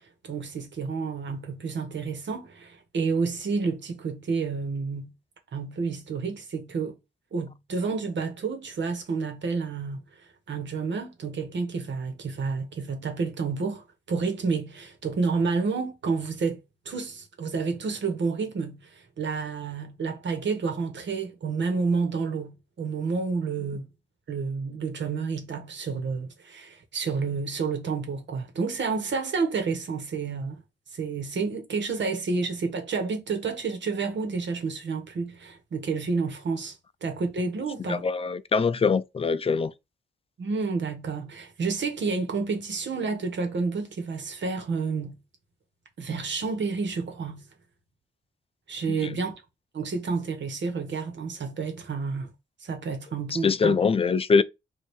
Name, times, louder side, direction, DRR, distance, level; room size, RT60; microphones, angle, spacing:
voice 1, 0.2-5.1 5.5-7.0 7.3-16.6 16.8-23.9 24.3-30.6 30.9-36.8 37.0-38.0 40.4-45.2 46.0-47.4 48.7-49.4 49.7-52.3 52.6-53.8, right 4 dB, 75° right, 1.4 m, -30 dB
voice 2, 37.9-39.7 49.0-49.1 53.3-54.4, left 5 dB, 30° left, 0.4 m, -23 dB
5.3 x 2.8 x 3.1 m
wide cardioid pair, 125°, 19 cm